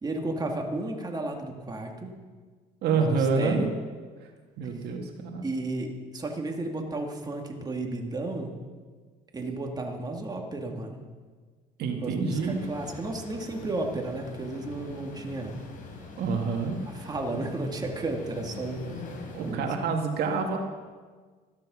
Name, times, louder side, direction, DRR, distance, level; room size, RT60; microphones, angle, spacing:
voice 1, 0.0-2.1 2.9-3.7 4.6-4.9 5.4-8.5 9.3-11.0 12.0-15.5 16.9-19.0 19.4-19.7, right 2 dB, 25° right, 2 dB, 2.2 m, -33 dB
voice 2, 2.8-3.6 4.6-5.5 11.8-12.6 16.2-17.1 19.3-20.6, right 5 dB, 70° right, 3 dB, 1.9 m, -27 dB
sound 1, 12.3-19.5, left 3 dB, 55° left, 3.8 m, -43 dB
14.0 x 12.0 x 6.2 m, 1.5 s
cardioid pair, 110°, 17 cm